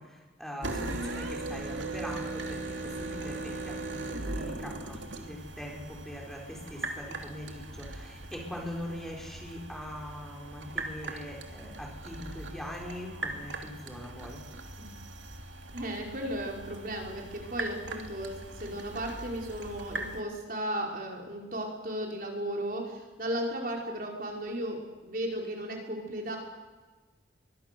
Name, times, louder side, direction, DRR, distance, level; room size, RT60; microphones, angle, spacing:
voice 1, 0.0-14.4, left 1 dB, ahead, -1 dB, 5.4 m, -42 dB
sound 1, 0.6-20.2, right 2 dB, 85° right, 2.8 m, -39 dB
voice 2, 15.7-26.4, right 1 dB, 50° right, 0 dB, 5.0 m, -35 dB
23.0 x 23.0 x 7.0 m, 1.3 s
head